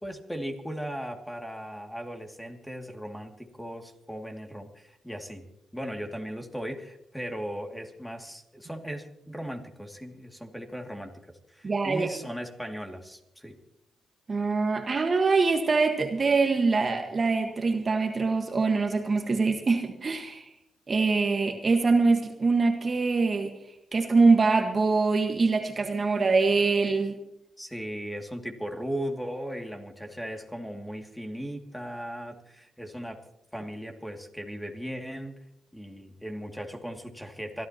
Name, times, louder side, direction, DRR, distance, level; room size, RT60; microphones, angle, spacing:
voice 1, 0.0-5.5 5.7-11.1 11.5-13.6 27.6-33.2 33.5-35.4 35.7-37.7, equal, 5° left, 3 dB, 2.5 m, -37 dB
voice 2, 11.6-12.1 14.3-20.5 20.9-23.5 23.9-27.1, right 4 dB, 40° right, 5 dB, 1.6 m, -24 dB
27.0 x 13.0 x 3.0 m, 0.81 s
supercardioid pair, 60°, 0 cm